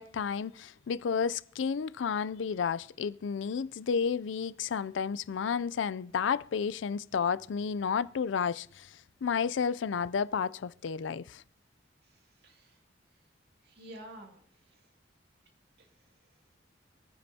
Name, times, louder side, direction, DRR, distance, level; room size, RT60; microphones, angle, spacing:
voice 1, 0.0-11.4, left 6 dB, 90° left, 0.4 m, -31 dB
voice 2, 12.0-12.8 13.6-14.9 15.8-15.9, right 1 dB, 60° right, 2.4 m, -51 dB
26.0 x 9.6 x 2.8 m
head